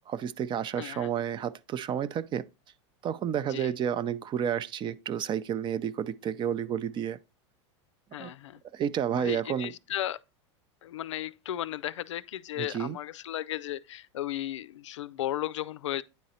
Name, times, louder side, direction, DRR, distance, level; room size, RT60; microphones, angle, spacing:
voice 1, 0.1-2.4 3.0-7.2 8.2-8.3 8.7-9.7 12.6-13.0, right 9 dB, 30° right, 0.5 m, -31 dB
voice 2, 0.8-1.1 3.5-3.7 8.1-8.6 9.2-10.2 10.8-16.0, left 13 dB, 90° left, 0.4 m, -35 dB
9.4 x 3.9 x 4.2 m
hypercardioid pair, 110°, 15 cm